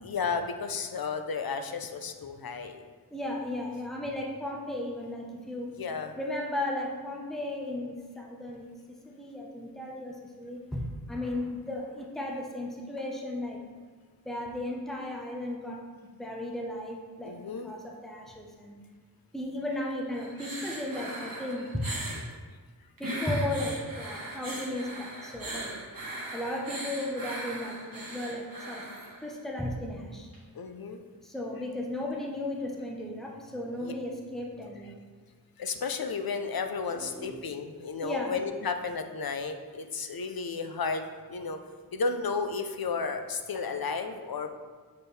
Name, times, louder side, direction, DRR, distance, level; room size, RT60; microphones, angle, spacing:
voice 1, 0.0-2.8 5.8-6.1 17.2-17.7 30.5-31.0 33.8-33.9 35.6-41.6 41.9-44.5, left 5 dB, 70° left, 6 dB, 0.6 m, -33 dB
voice 2, 3.1-5.8 6.2-8.7 9.1-13.6 14.3-17.3 17.6-18.8 19.3-21.9 23.0-25.7 26.3-28.9 29.2-30.3 31.2-34.9 37.0-37.4 38.0-38.3, left 1 dB, ahead, -1 dB, 0.8 m, -35 dB
sound 1, 20.1-22.3 23.0-29.3 30.3-30.4, right 1 dB, 60° right, 1.4 m, -39 dB
7.2 x 4.5 x 3.3 m, 1.5 s
wide cardioid pair, 55°, 38 cm